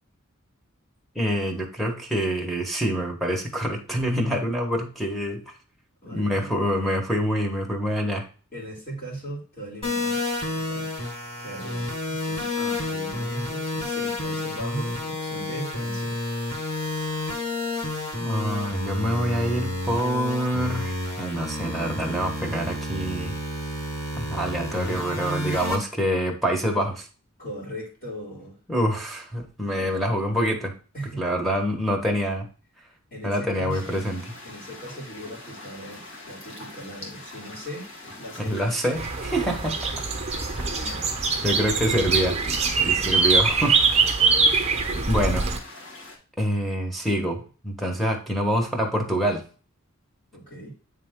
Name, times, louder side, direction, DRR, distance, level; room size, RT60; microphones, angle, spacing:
voice 1, 1.1-5.4 6.1-8.3 18.2-23.4 24.2-27.1 28.7-30.7 31.2-32.5 33.2-34.2 38.4-39.8 41.4-42.4 42.8-44.1 45.1-45.4 46.4-49.4, equal, ahead, -1 dB, 1.3 m, -26 dB
voice 2, 6.0-6.6 8.5-10.2 10.5-11.0 11.4-16.2 27.4-28.6 30.9-31.3 33.1-34.0 34.4-38.6 39.3-39.4 39.9-40.0 40.8-41.2 44.2-44.3 50.3-50.7, right 1 dB, 45° left, -4 dB, 2.4 m, -39 dB
sound 1, 9.8-25.8, left 2 dB, 30° left, 2.5 m, -30 dB
sound 2, 33.7-46.2, left 2 dB, 65° left, 2.0 m, -43 dB
sound 3, 39.0-45.6, right 4 dB, 30° right, 1.0 m, -23 dB
8.7 x 3.4 x 3.7 m, 0.37 s
head